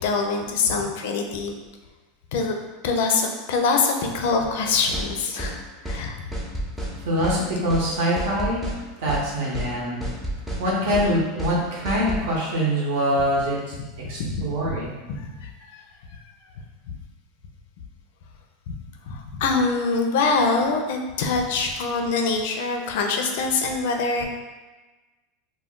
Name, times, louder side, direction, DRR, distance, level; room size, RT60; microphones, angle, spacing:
voice 1, 0.0-1.5 2.3-6.2 14.2-14.8 15.1-15.8 19.1-24.2, left 4 dB, 75° left, 4 dB, 0.4 m, -24 dB
sound 1, 4.9-5.1 5.4-5.6 5.9-6.0 6.3-6.9 7.2-7.4 7.7-7.9 8.2-8.8 9.1-9.2 9.5-9.7 10.0-10.6 10.9-11.1 11.4-11.6 11.9-12.2, right 1 dB, 10° right, 0.6 m, -30 dB
voice 2, 7.0-8.7 9.0-10.0 10.6-13.6 14.1-14.9, equal, 70° right, -5 dB, 0.8 m, -24 dB
2.3 x 2.1 x 3.6 m, 1.2 s
supercardioid pair, 130°, 0 cm